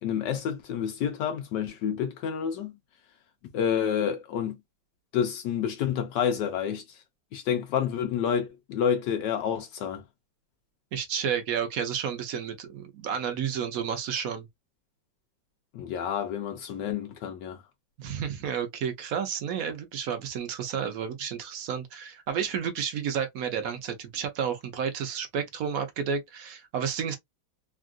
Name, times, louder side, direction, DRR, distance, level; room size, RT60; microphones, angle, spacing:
voice 1, 0.0-2.7 3.5-4.6 5.1-6.8 7.3-10.0 15.7-17.6, left 8 dB, 75° left, 1.2 m, -29 dB
voice 2, 10.9-14.5 18.0-27.2, right 7 dB, 65° right, 1.0 m, -31 dB
3.5 x 2.4 x 2.3 m
omnidirectional pair, 2.0 m